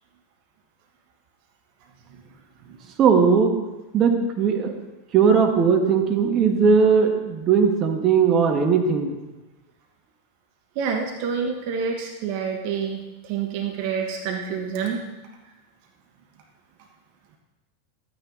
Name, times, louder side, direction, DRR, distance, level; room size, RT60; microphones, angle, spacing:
voice 1, 3.0-3.5 3.9-4.8 5.1-9.1, right 6 dB, 40° right, 4 dB, 1.7 m, -18 dB
voice 2, 10.7-13.0 13.2-15.0, right 6 dB, 55° right, 2 dB, 1.4 m, -27 dB
12.5 x 9.5 x 4.0 m, 1.1 s
hypercardioid pair, 90°, 0 cm